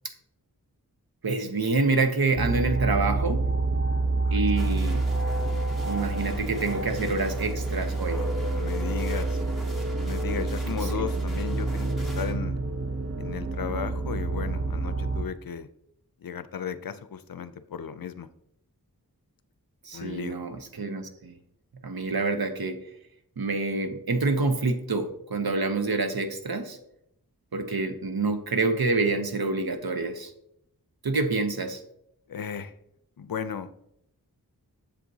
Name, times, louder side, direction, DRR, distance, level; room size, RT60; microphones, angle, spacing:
voice 1, 1.2-3.4 4.3-5.0 5.8-8.2 10.8-11.1 19.8-21.4 21.8-22.8 23.4-26.8 27.5-30.3 31.0-31.8, right 3 dB, 70° right, 7 dB, 0.9 m, -27 dB
sound 1, 2.3-15.2, right 3 dB, 40° right, 0.6 m, -28 dB
sound 2, 4.6-12.3, left 3 dB, ahead, 1.9 m, -40 dB
voice 2, 8.1-9.4 10.0-12.6 13.2-15.7 16.2-18.3 19.9-20.4 32.3-32.7 33.2-33.7, left 7 dB, 65° left, 12 dB, 0.5 m, -35 dB
7.6 x 7.1 x 2.7 m, 0.77 s
wide cardioid pair, 60°, 38 cm